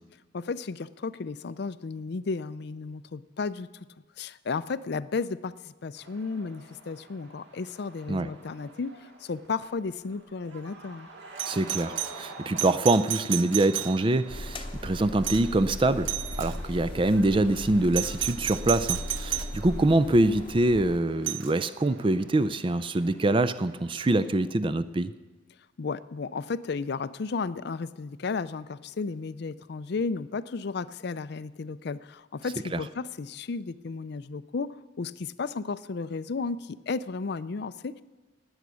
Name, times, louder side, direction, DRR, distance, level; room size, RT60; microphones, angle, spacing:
voice 1, 0.3-3.7 4.2-11.1 25.8-38.0, left 4 dB, 60° left, 16 dB, 0.5 m, -33 dB
sound 1, 5.9-24.4, right 2 dB, 60° right, 2.1 m, -49 dB
Doorbell, 11.4-14.3 15.2-15.6 16.0-16.6 17.9-19.6 21.3-21.5 23.9-24.0, right 13 dB, 80° right, 0.6 m, -33 dB
voice 2, 11.5-16.1 16.4-25.1 32.7-32.8, right 2 dB, 25° right, 12 dB, 0.4 m, -24 dB
sound 2, 14.3-21.0, left 1 dB, 25° left, 0.8 m, -38 dB
19.0 x 8.1 x 6.2 m, 1.3 s
head